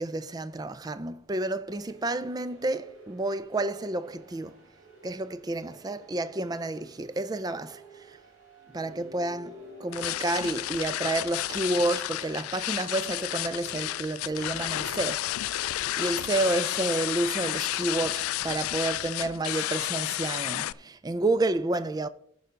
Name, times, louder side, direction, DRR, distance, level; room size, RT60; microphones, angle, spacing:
voice 1, 0.0-4.6 5.0-8.2 8.7-22.1, right 2 dB, 20° right, 0.4 m, -30 dB
sound 1, 1.7-16.2, right 2 dB, 70° right, 3.5 m, -52 dB
sound 2, 9.9-20.7, left 15 dB, 85° left, 0.3 m, -31 dB
16.0 x 5.5 x 3.7 m
head